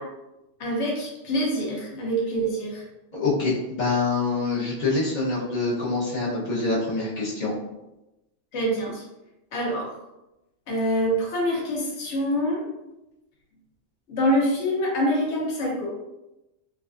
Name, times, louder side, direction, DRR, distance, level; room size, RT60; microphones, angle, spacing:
voice 1, 0.6-2.8 8.5-9.0 9.5-10.0 10.7-12.6 14.1-15.9, equal, 65° left, -3 dB, 1.1 m, -25 dB
voice 2, 3.1-7.5, left 3 dB, 40° left, -7 dB, 0.9 m, -25 dB
3.2 x 2.4 x 2.5 m, 0.95 s
omnidirectional pair, 1.3 m